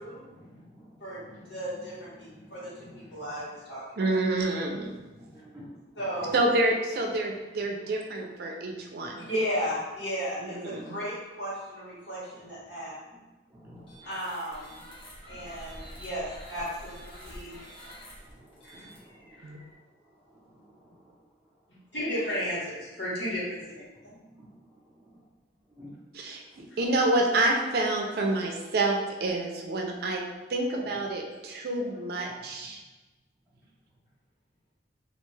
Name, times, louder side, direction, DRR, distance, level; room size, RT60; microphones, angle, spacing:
voice 1, 0.0-3.6 4.9-6.4 7.2-7.3 7.8-8.0 8.5-9.3 10.3-10.8 12.4-14.2 15.3-15.8 16.8-21.9 23.9-25.3 25.6-26.6 30.8-31.0 31.5-31.6 32.3-32.7 33.4-34.0, equal, 10° right, -6 dB, 0.6 m, -54 dB
voice 2, 1.5-3.8 6.0-6.3 9.3-12.9 14.0-14.8 15.3-17.6 18.0-18.1 18.6-18.8 19.4-19.5 21.9-23.8, equal, 70° left, -9 dB, 1.2 m, -34 dB
voice 3, 4.0-4.9 6.3-9.3 10.4-11.0 19.4-19.6 26.1-26.4 26.8-30.2 30.5-32.8, right 2 dB, 55° right, 1 dB, 0.4 m, -28 dB
sound 1, 13.8-19.7, equal, 30° left, 0.8 m, -47 dB
2.4 x 2.2 x 3.1 m, 1.2 s
head